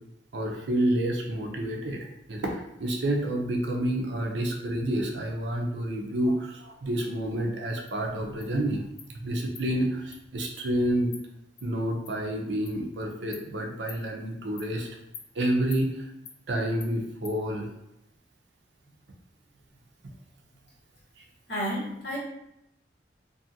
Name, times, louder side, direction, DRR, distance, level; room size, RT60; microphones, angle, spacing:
voice 1, 0.3-8.8 9.1-11.1 11.6-14.9 15.3-16.1 16.5-17.7, right 1 dB, 90° right, 2 dB, 0.6 m, -29 dB
Insect, 7.9-8.0 8.4-8.5 9.0-9.1 9.5-9.7 10.1-10.2 10.6-10.7 11.1-11.2 11.6-11.7 12.0-12.1 12.6-12.8 13.3-13.4 13.9-14.0 14.6-14.7 15.1-15.3 15.7-15.8 16.2-16.4 16.8-16.9 17.2-17.4, left 6 dB, 40° left, 0.4 m, -44 dB
voice 2, 21.5-22.2, equal, 70° left, -7 dB, 1.3 m, -31 dB
2.7 x 2.5 x 2.7 m, 0.83 s
head